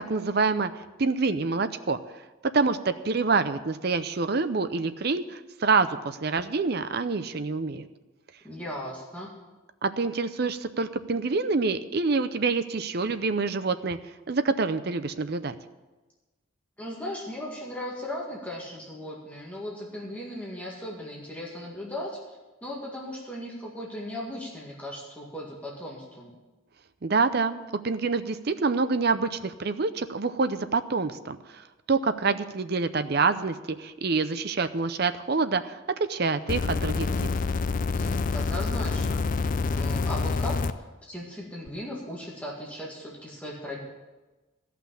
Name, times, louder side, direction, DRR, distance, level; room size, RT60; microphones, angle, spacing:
voice 1, 0.1-0.7 1.0-2.0 2.5-7.9 9.8-14.0 14.3-15.5 27.0-31.4 31.9-37.1, right 4 dB, 50° right, 11 dB, 0.6 m, -26 dB
voice 2, 8.4-9.3 16.8-26.3 37.9-39.2 39.7-40.6 41.1-43.8, left 1 dB, 5° left, -4 dB, 1.9 m, -37 dB
sound 1, 36.5-40.7 41.7-41.8, left 4 dB, 40° left, 0.4 m, -27 dB
14.0 x 5.9 x 8.4 m, 1.2 s
head